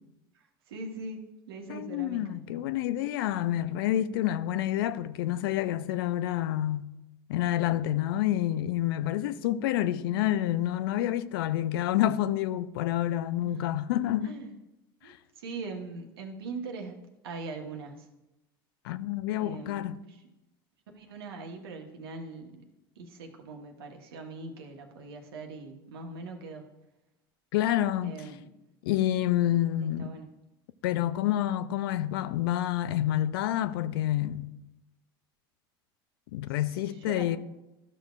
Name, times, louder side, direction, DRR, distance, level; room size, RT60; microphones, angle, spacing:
voice 1, 0.3-1.2 1.5-2.4 13.4-13.6 14.2-14.5 15.0-17.0 17.2-18.1 19.4-20.2 20.9-22.7 22.9-26.7 28.0-28.5 29.8-30.3 36.6-37.3, right 3 dB, 80° right, 1.2 m, -41 dB
voice 2, 1.7-6.9 7.3-14.4 15.0-15.2 18.8-20.0 27.5-28.2 28.8-30.2 30.8-34.5 36.3-37.4, left 12 dB, 75° left, 0.5 m, -28 dB
13.0 x 6.3 x 2.4 m
hypercardioid pair, 80°, 12 cm